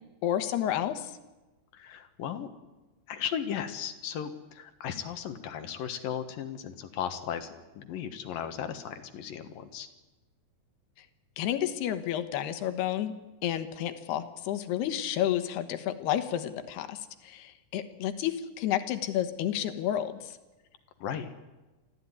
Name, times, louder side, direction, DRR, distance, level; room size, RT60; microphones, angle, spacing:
voice 1, 0.2-1.1 11.4-13.1 13.4-20.4, left 11 dB, 85° left, 10 dB, 3.3 m, -31 dB
voice 2, 1.7-2.5 3.1-9.9 21.0-21.3, left 8 dB, 65° left, 8 dB, 3.0 m, -36 dB
24.0 x 15.5 x 9.7 m, 1.1 s
omnidirectional pair, 4.6 m